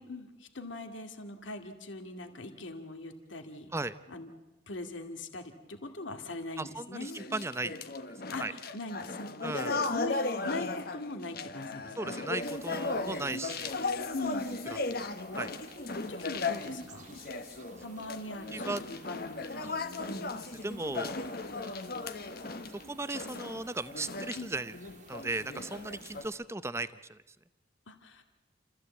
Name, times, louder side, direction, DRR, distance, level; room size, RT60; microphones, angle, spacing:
voice 1, 0.0-3.7 4.1-4.3 4.7-7.2 8.3-10.2 10.4-12.2 14.1-14.5 15.9-17.2 17.8-19.7 20.1-20.3 24.3-24.5 27.9-28.2, left 2 dB, 90° left, 5 dB, 2.1 m, -41 dB
voice 2, 6.6-7.7 8.4-8.5 9.4-9.7 12.0-13.7 14.7-15.1 15.4-15.5 18.5-18.8 20.6-21.1 22.9-24.7 25.1-27.2, right 2 dB, 15° right, 14 dB, 0.6 m, -36 dB
sound 1, 7.0-26.2, left 3 dB, 55° left, 1.2 m, -37 dB
sound 2, 12.4-26.3, right 4 dB, 40° right, 1.7 m, -56 dB
28.5 x 14.5 x 8.3 m, 1.1 s
head